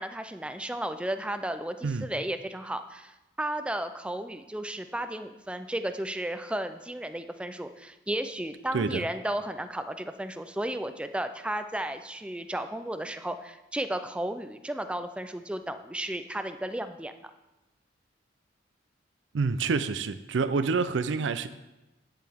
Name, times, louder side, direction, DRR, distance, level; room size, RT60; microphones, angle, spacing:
voice 1, 0.0-17.1, right 1 dB, 5° right, 9 dB, 0.4 m, -34 dB
voice 2, 8.7-9.1 19.3-21.5, right 4 dB, 75° right, 11 dB, 0.5 m, -27 dB
9.7 x 7.5 x 3.5 m, 0.99 s
head